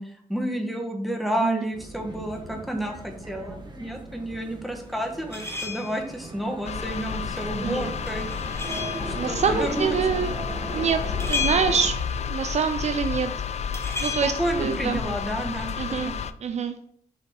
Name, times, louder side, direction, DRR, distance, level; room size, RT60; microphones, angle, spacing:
voice 1, 0.0-8.3 9.0-10.0 14.4-15.7 16.0-16.1, right 1 dB, ahead, 2 dB, 1.3 m, -30 dB
sound 1, 1.7-11.9, right 2 dB, 30° right, 1.2 m, -38 dB
sound 2, 5.3-6.1 8.1-9.1 11.2-12.1 13.7-14.3, left 5 dB, 20° left, 1.6 m, -32 dB
sound 3, 6.7-16.3, left 7 dB, 50° left, 0.4 m, -31 dB
voice 2, 7.6-7.9 8.7-8.8 9.2-10.3 10.7-12.0 12.3-13.3 14.0-14.3 14.6-15.0 15.8-16.1 16.4-16.7, right 6 dB, 50° right, 8 dB, 0.4 m, -25 dB
6.8 x 4.0 x 3.7 m, 0.66 s
cardioid pair, 85°, 15 cm